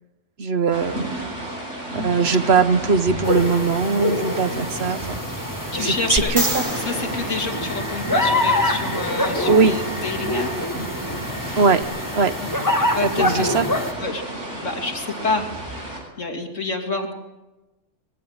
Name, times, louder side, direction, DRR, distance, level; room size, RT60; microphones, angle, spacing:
voice 1, 0.4-1.1 1.9-5.2 5.8-6.6 9.5-9.7 11.5-11.8 12.1-12.3 13.0-13.7, right 5 dB, 55° right, 11 dB, 1.3 m, -20 dB
sound 1, 0.7-16.0, right 1 dB, 70° right, 7.7 m, -32 dB
sound 2, 3.2-13.9, left 1 dB, 15° left, 1.6 m, -26 dB
voice 2, 5.7-6.3 6.7-10.5 12.4-12.5 12.9-13.5 14.0-14.2 14.6-15.4 16.2-17.1, left 3 dB, 80° left, 3 dB, 3.1 m, -27 dB
sound 3, 6.2-8.4 11.8-11.9, right 1 dB, 25° right, 4.5 m, -28 dB
22.0 x 15.0 x 9.8 m, 1.1 s
omnidirectional pair, 1.3 m